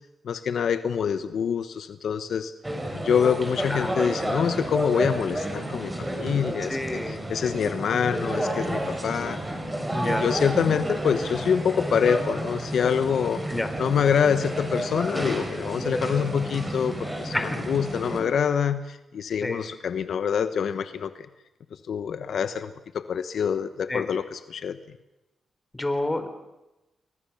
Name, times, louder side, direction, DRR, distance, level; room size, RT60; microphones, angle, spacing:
voice 1, 0.2-2.5 2.9-6.8 7.1-9.4 10.0-13.4 13.8-17.3 17.7-21.3 21.7-24.8, left 7 dB, 70° left, 11 dB, 1.1 m, -26 dB
sound 1, 2.6-18.2, right 1 dB, 15° right, 6.4 m, -31 dB
voice 2, 6.7-7.6 9.9-10.3 13.5-13.7 17.3-17.6 19.4-19.6 23.9-24.1 25.7-26.3, left 2 dB, 15° left, 9 dB, 3.5 m, -29 dB
29.5 x 22.0 x 7.1 m, 0.98 s
cardioid pair, 95°, 0 cm